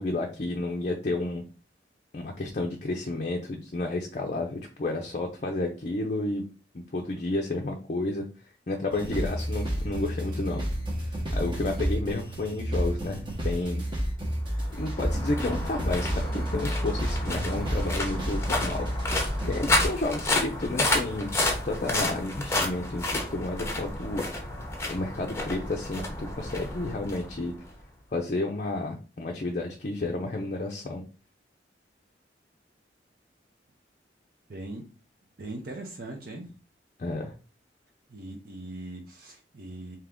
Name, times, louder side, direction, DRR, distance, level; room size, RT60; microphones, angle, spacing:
voice 1, 0.0-1.4 2.1-6.4 6.7-8.2 8.7-10.7 11.3-13.8 14.8-18.9 19.4-24.2 24.9-27.5 28.1-31.0 37.0-37.3, left 2 dB, 45° left, 2 dB, 0.5 m, -31 dB
sound 1, 8.9-19.9, equal, 25° right, 0.9 m, -30 dB
sound 2, 14.4-27.8, left 2 dB, 15° left, 0.7 m, -31 dB
voice 2, 34.5-34.9 35.4-36.5 38.1-40.0, right 2 dB, 55° right, 2 dB, 0.7 m, -40 dB
3.6 x 2.8 x 3.5 m, 0.35 s
head